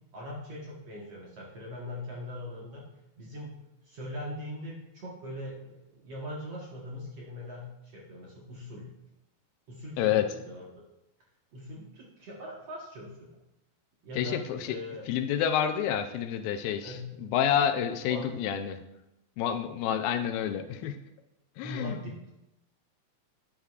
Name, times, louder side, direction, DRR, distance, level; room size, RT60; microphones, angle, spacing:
voice 1, 0.1-2.8 3.2-3.5 3.9-8.9 9.7-10.6 11.5-13.3 14.0-15.1 16.8-17.1 18.0-18.3 21.6-22.3, left 1 dB, 60° right, -3 dB, 1.8 m, -41 dB
voice 2, 14.1-14.8 15.1-18.8 19.4-21.0 21.6-22.0, left 9 dB, 80° left, 8 dB, 2.3 m, -29 dB
12.0 x 9.6 x 2.4 m, 0.90 s
omnidirectional pair, 4.3 m